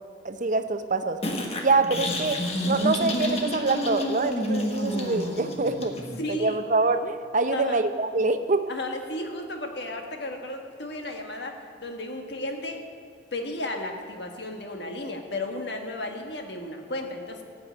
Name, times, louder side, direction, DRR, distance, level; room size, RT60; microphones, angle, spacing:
voice 1, 0.2-1.2 1.6-2.4 2.7-5.9 6.3-8.6, right 3 dB, 45° right, 9 dB, 0.7 m, -25 dB
sound 1, 1.2-6.2, left 1 dB, 35° left, 1.5 m, -29 dB
voice 2, 6.2-6.6 7.5-7.8 8.7-12.8 13.3-17.4, left 1 dB, 65° left, 3 dB, 1.5 m, -34 dB
16.0 x 5.9 x 9.0 m, 2.2 s
head